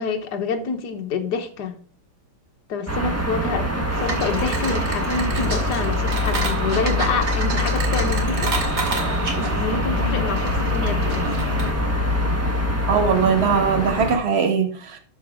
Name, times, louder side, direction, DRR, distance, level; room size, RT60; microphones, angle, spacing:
voice 1, 0.0-1.8 2.7-8.5 9.3-11.3 12.3-12.4, left 5 dB, 55° left, 1.7 m, -27 dB
sound 1, 2.9-14.2, left 1 dB, 10° right, 0.8 m, -24 dB
sound 2, 3.9-11.7, right 2 dB, 50° right, 2.8 m, -29 dB
voice 2, 12.9-15.0, right 6 dB, 35° right, 1.5 m, -20 dB
12.5 x 5.1 x 3.6 m
omnidirectional pair, 2.4 m